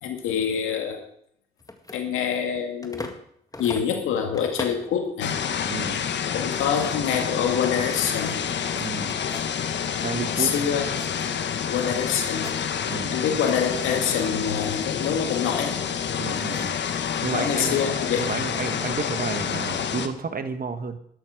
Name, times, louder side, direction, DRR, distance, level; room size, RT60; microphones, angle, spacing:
voice 1, 0.0-1.0 1.9-3.1 3.6-5.3 6.3-8.4 10.4-11.1 11.7-12.5 13.1-15.8 17.2-18.3, left 7 dB, 75° left, 4 dB, 2.2 m, -26 dB
sound 1, 1.6-3.2 3.5-4.9 5.4-5.8 6.1-6.2 6.5-10.5 10.8-11.9 12.2-13.1 13.4-15.1 15.9-17.7, left 2 dB, 15° left, 1.9 m, -42 dB
sound 2, 5.2-20.1, left 8 dB, 60° left, 1.2 m, -28 dB
voice 2, 5.7-6.1 8.8-9.2 10.0-10.5 12.9-13.2 16.2-16.8 17.2-17.8 18.2-21.0, right 5 dB, 45° right, 9 dB, 1.6 m, -31 dB
12.0 x 11.5 x 5.0 m, 0.67 s
hypercardioid pair, 40°, 21 cm